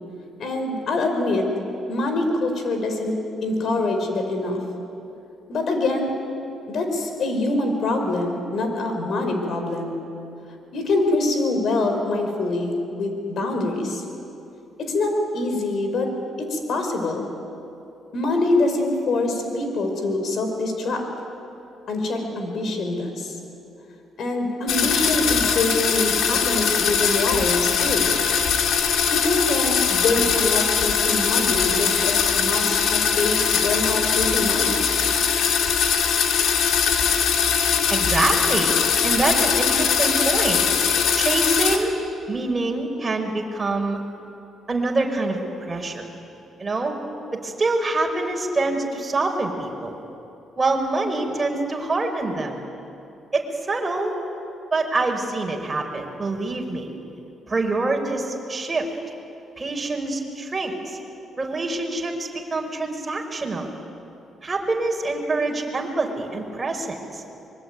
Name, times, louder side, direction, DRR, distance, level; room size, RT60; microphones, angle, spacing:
voice 1, 0.4-1.5 1.9-3.1 3.4-4.6 5.5-6.1 6.7-9.9 10.7-14.0 14.8-16.1 16.4-17.3 18.1-21.0 21.9-23.3 24.2-28.1 29.1-34.8, left 2 dB, 60° left, 5 dB, 5.2 m, -24 dB
sound 1, 24.7-41.8, left 7 dB, 80° left, 2.8 m, -21 dB
voice 2, 37.9-38.7 39.0-40.6 41.2-41.9 42.3-44.0 44.7-45.4 45.7-46.1 46.6-46.9 47.3-50.0 50.6-52.6 53.3-54.1 54.7-56.9 57.5-58.9 59.6-61.0 61.4-63.7 64.4-67.2, right 2 dB, 25° right, 2 dB, 5.1 m, -25 dB
25.5 x 22.5 x 9.5 m, 2.9 s
cardioid pair, 90°, 0 cm